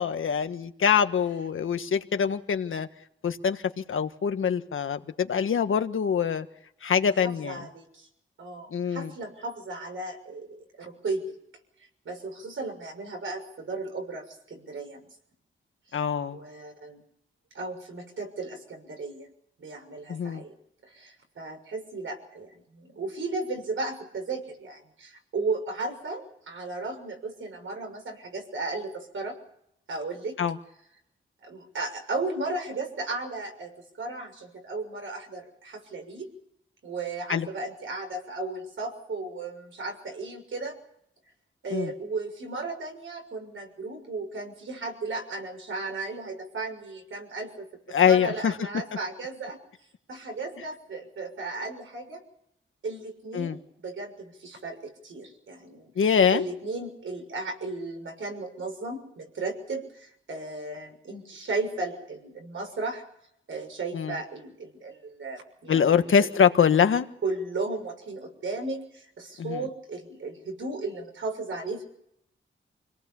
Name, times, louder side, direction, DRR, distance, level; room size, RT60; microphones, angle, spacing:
voice 1, 0.0-2.9 3.2-3.6 3.9-6.4 6.8-7.6 8.7-9.1 15.9-16.4 20.1-20.4 30.4-30.6 37.3-37.5 41.7-41.9 47.9-48.5 53.3-53.6 55.9-56.4 63.9-64.1 65.7-67.1 69.4-69.6, left 7 dB, 75° left, 9 dB, 1.5 m, -24 dB
voice 2, 7.0-8.1 8.4-11.3 12.0-15.0 16.3-17.0 17.5-19.3 19.6-20.5 20.8-29.4 29.9-30.4 31.4-33.7 34.0-36.3 36.8-40.7 41.6-49.6 50.1-52.2 52.8-55.9 56.3-63.0 63.5-66.3 67.2-71.8, right 3 dB, 70° right, 4 dB, 6.5 m, -35 dB
28.0 x 18.5 x 7.1 m, 0.75 s
wide cardioid pair, 175°, 21 cm